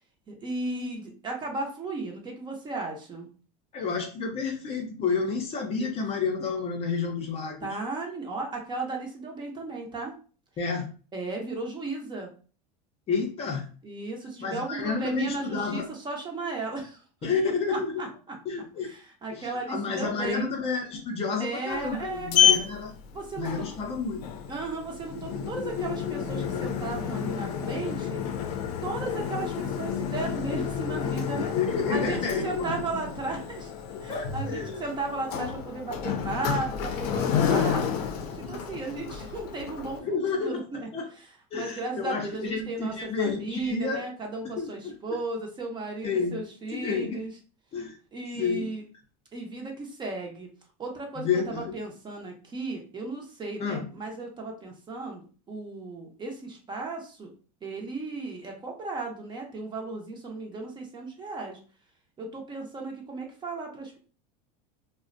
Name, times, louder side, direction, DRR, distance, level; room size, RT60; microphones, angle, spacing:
voice 1, 0.3-3.3 7.6-10.1 11.1-12.3 13.8-17.0 17.7-18.4 18.8-20.5 21.4-22.7 23.1-23.7 24.5-28.2 28.8-31.5 31.9-33.7 34.0-37.8 38.3-40.2 40.4-40.9 41.5-47.3 48.1-48.8 49.3-50.5 50.8-57.3 57.6-61.6 62.2-64.0, right 3 dB, 25° right, 1 dB, 0.6 m, -35 dB
voice 2, 3.7-7.7 10.6-10.9 13.1-13.7 14.4-15.9 17.2-18.0 18.5-18.9 19.3-22.9 23.4-24.2 31.6-32.7 34.1-34.8 38.4-38.6 40.0-41.1 41.5-44.0 44.6-45.0 46.0-46.4 46.7-47.2 47.7-48.0 48.3-48.7 51.2-51.8 53.6-53.9, left 5 dB, 30° left, 2 dB, 0.5 m, -30 dB
Sliding door, 21.7-40.0, left 8 dB, 80° left, 0.5 m, -30 dB
2.4 x 2.0 x 2.5 m, 0.38 s
supercardioid pair, 125°, 20 cm